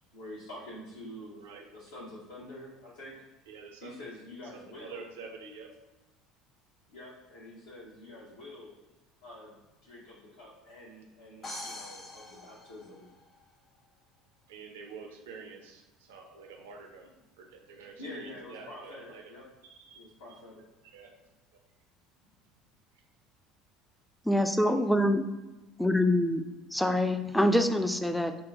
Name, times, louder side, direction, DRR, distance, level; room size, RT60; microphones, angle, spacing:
voice 1, 0.1-1.4 1.7-3.1 3.8-5.1 6.9-8.7 9.2-13.1 18.0-19.4 19.9-20.6, left 1 dB, 70° left, -6 dB, 0.7 m, -47 dB
voice 2, 3.5-4.0 4.8-5.7 14.5-19.2 19.7-20.0 20.8-21.1, right 5 dB, 70° right, 2 dB, 0.4 m, -47 dB
sound 1, 11.4-13.4, left 1 dB, 30° left, 0.8 m, -43 dB
voice 3, 24.3-25.2 25.8-26.4 26.7-28.4, left 1 dB, 5° left, 7 dB, 0.3 m, -25 dB
3.8 x 2.1 x 3.6 m, 1.1 s
figure-of-eight pair, 65°, 0 cm